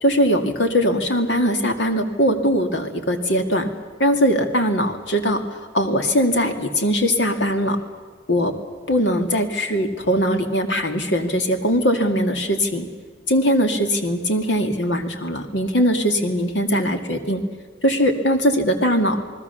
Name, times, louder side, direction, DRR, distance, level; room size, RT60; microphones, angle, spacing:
voice 1, 0.0-3.7 4.0-7.8 8.3-8.5 8.9-12.9 13.3-17.4 17.8-19.2, equal, 90° left, 6 dB, 2.3 m, -20 dB
28.0 x 20.0 x 7.0 m, 1.5 s
head